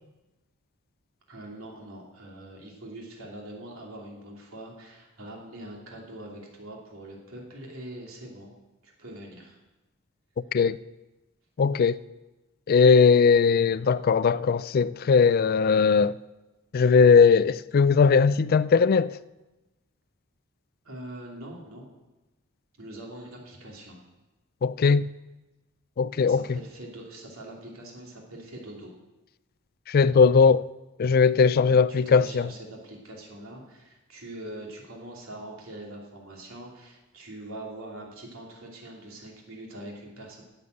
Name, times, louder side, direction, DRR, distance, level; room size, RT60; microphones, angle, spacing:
voice 1, 1.3-8.5 8.8-9.6 20.8-21.9 22.8-24.0 26.2-28.9 31.6-40.4, right 1 dB, 90° right, 2.8 m, -43 dB
voice 2, 11.6-12.0 12.7-16.2 16.7-19.2 24.6-25.1 26.0-26.6 29.9-30.6 31.0-32.5, left 5 dB, 45° left, 0.3 m, -19 dB
11.0 x 8.1 x 7.8 m
head